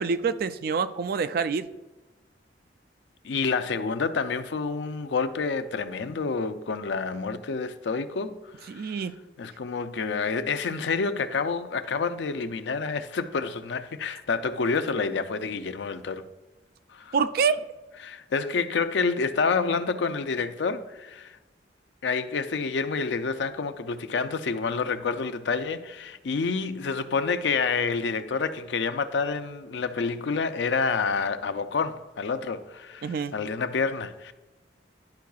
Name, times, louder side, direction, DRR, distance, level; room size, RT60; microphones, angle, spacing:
voice 1, 0.0-1.7 8.7-9.1 17.1-17.6 33.0-33.3, right 5 dB, 55° right, 0.3 m, -26 dB
voice 2, 3.2-9.0 9.4-16.3 16.9-17.2 18.0-21.4 22.0-34.3, left 4 dB, 85° left, 0.5 m, -28 dB
11.5 x 4.6 x 2.3 m
head